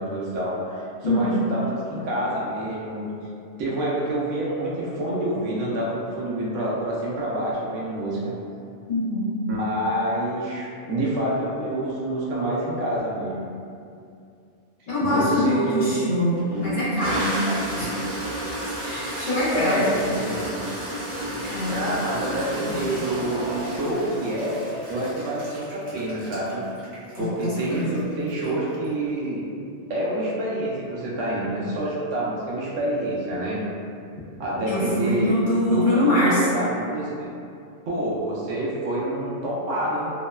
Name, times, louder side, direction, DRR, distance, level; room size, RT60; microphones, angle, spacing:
voice 1, 0.0-3.1 3.6-8.3 9.5-13.5 15.0-16.3 19.5-20.5 21.7-24.6 24.9-26.6 27.2-29.5 29.9-33.6 34.4-35.3 35.7-37.3 37.9-40.1, right 1 dB, 85° right, -6 dB, 1.0 m, -27 dB
voice 2, 1.0-1.4 8.9-9.3 14.9-17.4 17.7-17.9 18.8-19.9 21.3-21.8 27.2-28.0 34.7-36.5, left 1 dB, 55° left, -10 dB, 0.6 m, -24 dB
Toilet flush, 15.7-15.8 16.4-28.8, right 1 dB, 60° right, 1.1 m, -32 dB
2.9 x 2.0 x 2.2 m, 2.4 s
omnidirectional pair, 1.2 m